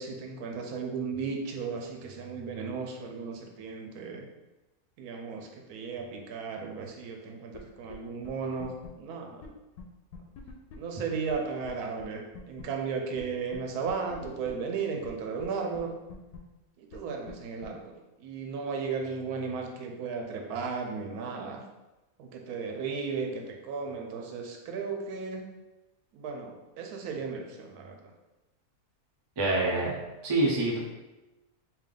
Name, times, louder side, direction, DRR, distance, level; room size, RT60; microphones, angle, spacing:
voice 1, 0.0-4.2 5.0-9.4 10.8-15.9 16.8-21.6 22.2-25.5 26.1-28.1, right 5 dB, 85° right, 2 dB, 1.1 m, -35 dB
sound 1, 7.5-7.6 7.9-8.0 8.2-8.3 8.6-8.9 9.4-9.5 9.8-9.9 10.1-10.8 11.3-11.4 11.6-11.7 12.0-12.1 12.3-12.6 13.2-13.3 13.5-13.6 13.9-14.5 15.0-15.1 15.4-15.5 15.7-15.8 16.1-16.4 16.9-17.0 17.3-17.4 17.6-17.7, left 6 dB, 90° left, 1.1 m, -44 dB
voice 2, 29.4-30.0 30.2-30.8, right 2 dB, 30° right, -3 dB, 0.5 m, -26 dB
3.4 x 2.8 x 3.7 m, 1.1 s
omnidirectional pair, 1.6 m